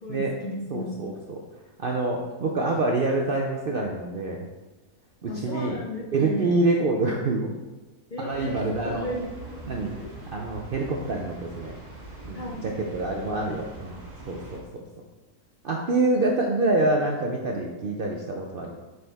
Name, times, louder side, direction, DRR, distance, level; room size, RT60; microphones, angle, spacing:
voice 1, 0.0-1.0 5.3-6.6 8.1-9.6 10.0-10.1 12.3-13.1, left 1 dB, 45° left, -2 dB, 0.7 m, -35 dB
voice 2, 0.7-1.4 1.8-4.5 5.2-5.8 6.1-7.5 8.2-9.0 9.7-10.0 10.3-11.8 12.2-14.0 14.3-14.8 15.6-18.8, right 2 dB, 55° right, 0 dB, 0.6 m, -26 dB
sound 1, 8.3-14.6, right 2 dB, 75° right, 2.0 m, -43 dB
7.8 x 4.1 x 3.4 m, 1.2 s
omnidirectional pair, 1.5 m